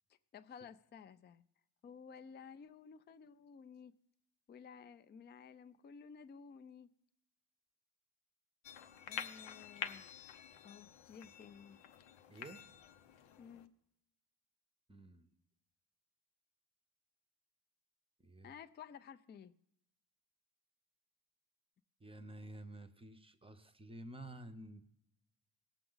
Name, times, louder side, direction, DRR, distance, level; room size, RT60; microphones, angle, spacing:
voice 1, 0.1-1.4 1.8-3.9 4.5-6.9 9.1-10.1 10.6-11.8 13.4-13.7 18.4-19.5, left 6 dB, 25° left, 0.3 m, -54 dB
sound 1, 8.6-13.7, left 9 dB, 90° left, 0.8 m, -48 dB
voice 2, 12.3-12.7 14.9-15.3 18.2-18.5 22.0-24.8, right 1 dB, 10° right, 0.7 m, -51 dB
17.0 x 7.0 x 3.9 m
cardioid pair, 100°, 45 cm